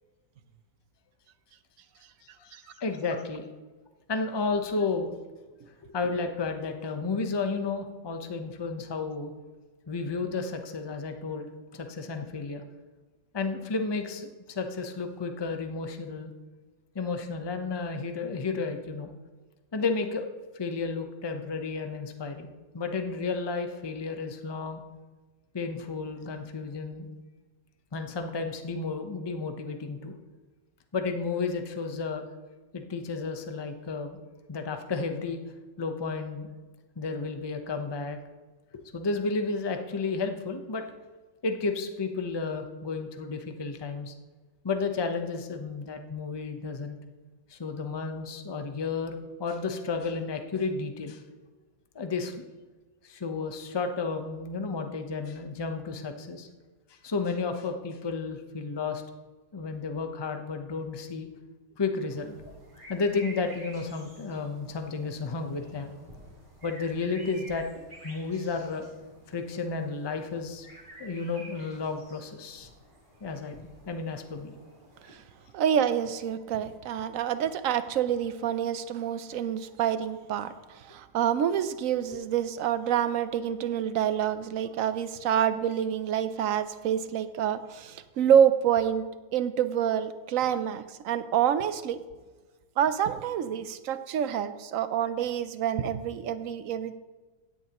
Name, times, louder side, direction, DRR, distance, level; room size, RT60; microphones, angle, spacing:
voice 1, 2.4-3.4 4.1-5.1 5.9-9.3 9.9-11.5 11.7-12.6 13.3-16.3 16.9-19.1 19.7-20.2 20.5-22.5 22.7-24.8 25.5-27.1 27.9-30.1 30.9-32.3 32.7-34.2 34.5-35.4 35.8-36.5 37.0-38.2 38.7-40.8 41.4-44.1 44.6-47.0 47.5-51.2 51.9-52.3 53.0-56.5 57.0-59.0 59.5-61.3 61.8-62.4 62.9-65.9 66.6-67.7 68.0-68.9 69.3-70.7 71.0-72.7 73.2-73.6 73.9-74.5, left 4 dB, 30° left, 5 dB, 0.5 m, -32 dB
sound 1, 62.1-75.1, right 1 dB, 25° right, 2.6 m, -51 dB
voice 2, 75.5-89.1 89.3-92.0 92.8-97.0, right 9 dB, 70° right, 12 dB, 0.8 m, -27 dB
16.5 x 10.0 x 3.0 m, 1.3 s
omnidirectional pair, 1.9 m